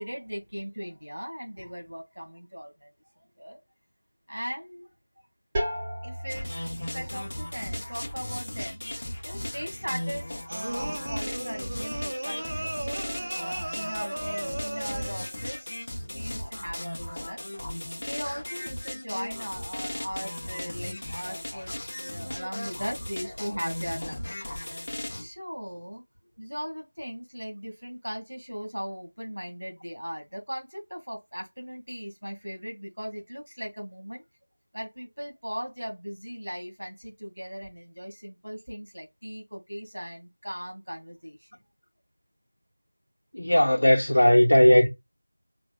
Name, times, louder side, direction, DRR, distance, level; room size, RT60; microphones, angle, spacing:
voice 1, 0.0-2.9 3.4-3.6 4.3-4.9 6.0-8.8 9.2-12.8 13.3-17.6 18.0-24.4 25.1-26.0 26.4-34.2 34.7-41.6, equal, 85° right, 2.0 m, -38 dB
sound 1, 5.5-11.1, equal, 10° right, 0.7 m, -38 dB
sound 2, 6.3-25.2, left 1 dB, 30° left, 0.9 m, -36 dB
sound 3, 10.5-15.4, right 1 dB, 35° right, 0.4 m, -35 dB
voice 2, 43.3-44.9, left 1 dB, 70° left, 1.0 m, -18 dB
3.9 x 3.4 x 2.3 m
figure-of-eight pair, 175°, 0 cm